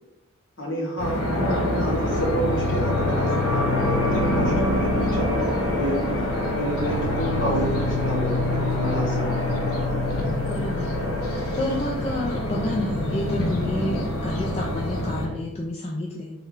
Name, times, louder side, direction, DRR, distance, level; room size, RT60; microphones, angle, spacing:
voice 1, 0.6-1.2 1.8-6.0 6.5-8.4 8.8-9.6 11.5-11.6 13.7-13.9, equal, 60° left, -3 dB, 1.0 m, -30 dB
sound 1, 1.0-15.3, left 1 dB, 85° left, 0.7 m, -25 dB
voice 2, 1.3-1.9 10.4-10.9 11.6-16.3, left 1 dB, 30° left, -3 dB, 0.3 m, -29 dB
3.2 x 2.2 x 3.6 m, 0.99 s
head